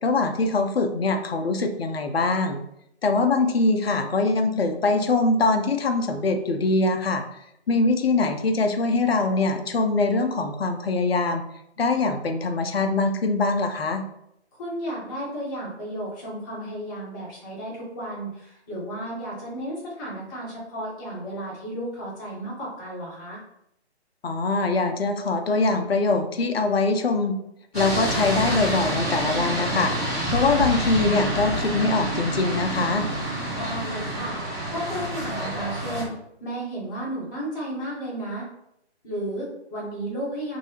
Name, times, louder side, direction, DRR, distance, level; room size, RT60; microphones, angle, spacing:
voice 1, 0.0-2.6 3.0-7.2 7.7-11.4 11.8-14.0 24.2-27.3 27.7-33.1, left 3 dB, 60° left, 6 dB, 0.6 m, -23 dB
voice 2, 14.6-23.4 33.5-34.4 34.7-36.1 36.4-38.5 39.0-40.6, right 1 dB, 20° left, -6 dB, 1.0 m, -33 dB
sound 1, 27.7-36.0, right 1 dB, 5° left, 0.6 m, -28 dB
3.1 x 2.7 x 2.9 m, 0.77 s
figure-of-eight pair, 145°, 34 cm